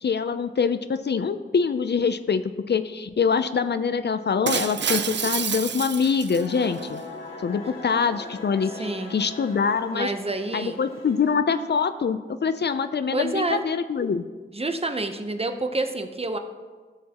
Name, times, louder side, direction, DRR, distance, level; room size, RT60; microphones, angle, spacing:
voice 1, 0.0-7.0 7.4-10.1 10.5-14.2, left 6 dB, 55° left, 11 dB, 0.5 m, -24 dB
Shatter, 4.5-6.9, right 7 dB, 60° right, 0.4 m, -28 dB
sound 1, 6.3-11.3, left 3 dB, 85° left, 1.4 m, -40 dB
voice 2, 8.8-9.2 9.9-10.8 13.1-13.6 14.5-16.4, right 2 dB, 30° right, 7 dB, 0.8 m, -28 dB
14.0 x 6.4 x 2.9 m, 1.4 s
cardioid pair, 60°, 21 cm